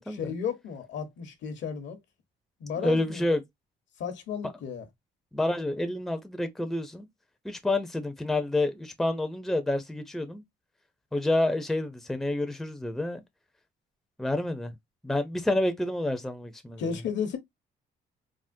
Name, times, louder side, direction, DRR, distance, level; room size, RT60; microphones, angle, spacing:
voice 1, 0.1-2.0 2.6-3.2 4.0-4.9 16.8-17.4, left 7 dB, 75° left, 0.9 m, -33 dB
voice 2, 2.8-3.4 5.3-7.1 7.4-10.4 11.1-13.2 14.2-14.7 15.0-16.8, left 2 dB, ahead, 0.5 m, -28 dB
3.5 x 2.1 x 2.5 m
cardioid pair, 90°, 19 cm